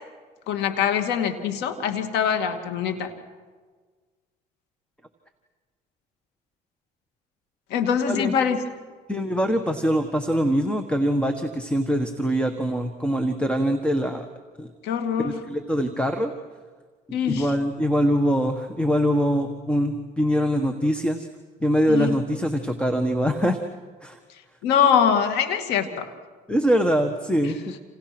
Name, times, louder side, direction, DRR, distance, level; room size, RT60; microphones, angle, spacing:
voice 1, 0.5-3.1 7.7-8.6 14.8-15.4 17.1-17.5 21.9-22.1 24.6-26.1 27.4-27.5, left 7 dB, 85° left, 7 dB, 2.5 m, -23 dB
voice 2, 9.1-14.3 14.6-14.7 15.2-16.3 17.3-21.3 21.6-23.6 24.0-24.2 26.5-27.5, equal, 5° left, 6 dB, 1.6 m, -23 dB
29.0 x 28.5 x 6.2 m, 1.5 s
cardioid pair, 110°, 17 cm